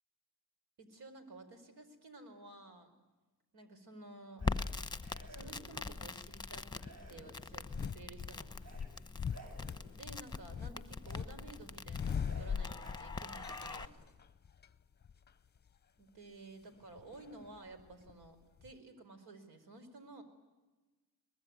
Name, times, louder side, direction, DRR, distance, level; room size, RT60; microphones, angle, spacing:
voice 1, 0.8-2.9 3.5-4.4 5.3-6.8 7.1-8.6 9.9-13.9 16.0-20.2, right 2 dB, 85° right, 8 dB, 4.9 m, -53 dB
Crackle, 4.4-13.9, left 4 dB, 10° left, 1.0 m, -43 dB
sound 1, 4.4-4.7 5.0-5.9 6.8-7.7 8.6-8.9 9.2-10.2 11.0-11.3 11.6-11.8 12.2-13.1 13.5-14.2, right 2 dB, 45° right, 6.8 m, -57 dB
sound 2, 7.7-8.3 8.8-11.3 11.6-13.0 13.4-14.7 15.0-15.3 17.0-18.3 18.6-18.7, left 7 dB, 25° left, 0.7 m, -40 dB
23.0 x 20.5 x 9.4 m, 1.2 s
cardioid pair, 125°, 37 cm